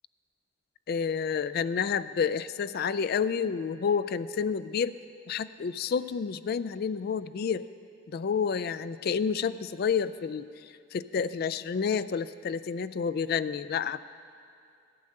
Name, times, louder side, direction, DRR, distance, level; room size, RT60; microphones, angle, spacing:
voice 1, 0.9-4.9 5.3-7.6 8.1-14.0, left 6 dB, 45° left, 15 dB, 0.3 m, -29 dB
13.0 x 8.8 x 6.4 m, 2.4 s
head